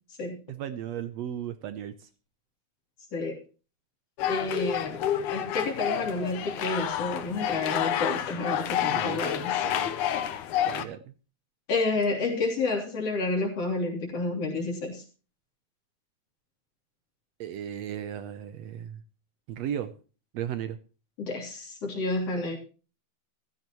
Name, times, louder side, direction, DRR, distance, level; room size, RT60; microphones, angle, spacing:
voice 1, 0.5-2.1 8.8-9.2 9.6-9.9 10.6-11.1 17.4-19.0 19.5-19.9 20.3-20.8, right 10 dB, 70° right, 12 dB, 1.8 m, -35 dB
sound 1, 4.2-10.8, left 10 dB, 80° left, 2.4 m, -29 dB
voice 2, 4.3-9.5 11.7-15.0 21.2-22.6, left 3 dB, 55° left, 1 dB, 4.3 m, -30 dB
14.5 x 14.0 x 3.0 m, 0.35 s
omnidirectional pair, 3.4 m